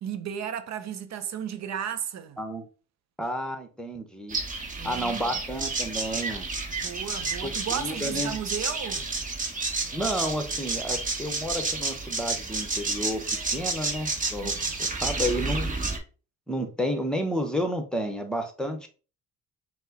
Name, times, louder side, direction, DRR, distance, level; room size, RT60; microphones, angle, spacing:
voice 1, 0.0-2.4 4.8-5.4 6.8-9.1 14.4-14.9, right 8 dB, 65° right, 0.6 m, -34 dB
voice 2, 3.2-4.4 4.8-6.5 7.4-8.3 9.9-13.2 13.5-14.6 15.0-15.7 16.5-18.9, equal, 5° left, 0.8 m, -31 dB
sound 1, 4.3-16.0, right 3 dB, 25° right, 1.1 m, -30 dB
5.4 x 2.1 x 3.8 m
cardioid pair, 90°, 30 cm